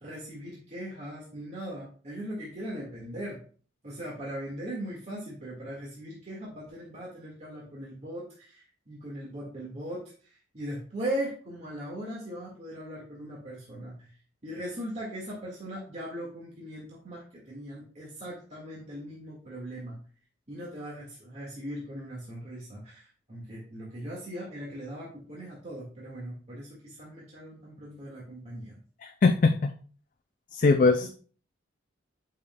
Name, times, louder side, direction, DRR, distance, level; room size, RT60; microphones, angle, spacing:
voice 1, 0.0-3.4 3.8-8.2 8.9-10.0 10.5-13.9 14.4-17.2 17.5-20.0 20.5-23.0 23.3-28.8, right 1 dB, 35° right, -5 dB, 1.8 m, -39 dB
voice 2, 29.0-29.7 30.5-31.1, left 3 dB, 45° left, 6 dB, 0.4 m, -21 dB
8.5 x 5.5 x 2.3 m, 0.42 s
head